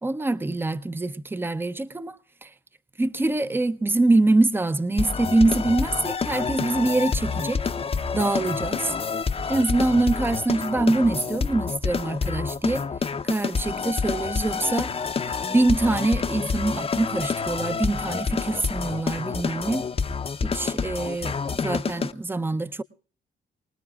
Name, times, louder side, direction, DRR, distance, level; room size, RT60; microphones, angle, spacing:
voice 1, 0.0-2.5 3.0-7.6 8.1-8.9 9.5-12.8 13.2-14.9 15.4-19.9 20.4-22.8, right 2 dB, 10° right, 0.6 m, -24 dB
sound 1, 5.0-22.1, left 5 dB, 30° left, 0.7 m, -28 dB
24.5 x 19.5 x 2.4 m
cardioid pair, 90°, 20 cm